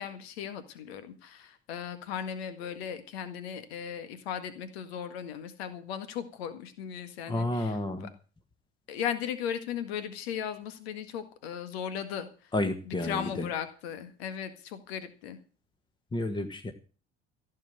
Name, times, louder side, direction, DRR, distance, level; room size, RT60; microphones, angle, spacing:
voice 1, 0.0-8.1 8.9-12.5 12.8-15.4, left 8 dB, 65° left, 11 dB, 1.8 m, -37 dB
voice 2, 7.3-8.1 12.5-13.5 16.1-16.7, left 1 dB, 15° left, 8 dB, 1.6 m, -31 dB
15.5 x 7.6 x 7.6 m, 0.37 s
figure-of-eight pair, 65°, 34 cm